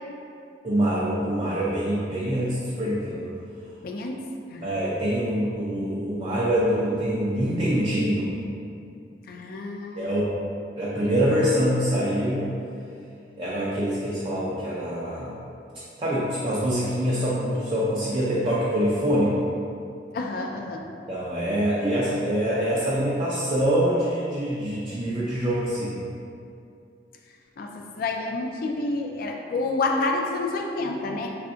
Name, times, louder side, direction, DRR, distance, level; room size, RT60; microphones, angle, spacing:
voice 1, 0.6-3.3 4.6-8.3 10.0-10.2 10.8-12.5 13.4-15.3 16.0-19.4 21.1-26.0, equal, 30° right, -7 dB, 0.4 m, -25 dB
voice 2, 3.8-4.2 4.5-4.7 9.3-10.2 20.1-20.9 27.6-31.4, left 3 dB, 55° left, 2 dB, 0.4 m, -29 dB
3.3 x 2.4 x 3.7 m, 2.5 s
head